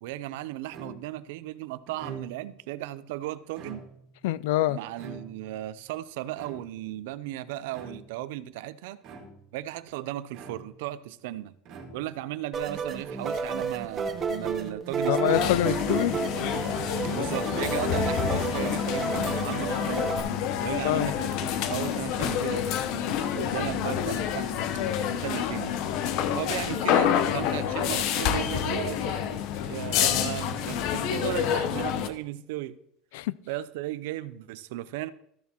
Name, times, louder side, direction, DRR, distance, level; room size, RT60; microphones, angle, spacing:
voice 1, 0.0-3.8 4.7-9.0 9.5-11.5 11.9-15.5 17.0-20.1 20.6-22.6 23.2-24.5 25.0-25.8 26.3-29.4 29.7-32.8 33.5-35.1, right 14 dB, 80° right, 0.5 m, -36 dB
sound 1, 0.7-1.3 1.9-2.6 3.4-4.2 5.0-5.7 6.4-7.0 7.7-8.3 9.0-9.6 10.3-10.9 11.7-12.3 13.0-13.7, right 3 dB, 50° right, 1.9 m, -45 dB
voice 2, 4.2-4.8 15.1-16.1 20.8-21.1 33.1-33.3, left 15 dB, 85° left, 0.3 m, -25 dB
sound 2, 12.5-20.2, right 4 dB, 25° right, 0.9 m, -31 dB
sound 3, 15.3-32.1, left 9 dB, 50° left, 0.7 m, -28 dB
14.0 x 7.2 x 3.0 m
cardioid pair, 165°, 0 cm